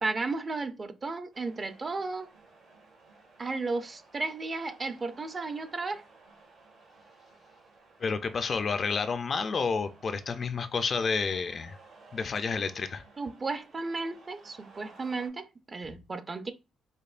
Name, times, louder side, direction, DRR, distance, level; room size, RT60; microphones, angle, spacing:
voice 1, 0.0-2.3 3.4-6.0 13.2-16.5, right 3 dB, 35° right, 0.5 m, -34 dB
sound 1, 1.3-15.3, right 3 dB, 75° right, 1.8 m, -57 dB
voice 2, 8.0-11.8 12.1-13.0, left 5 dB, 45° left, 0.4 m, -30 dB
5.1 x 2.1 x 2.4 m
cardioid pair, 90°, 0 cm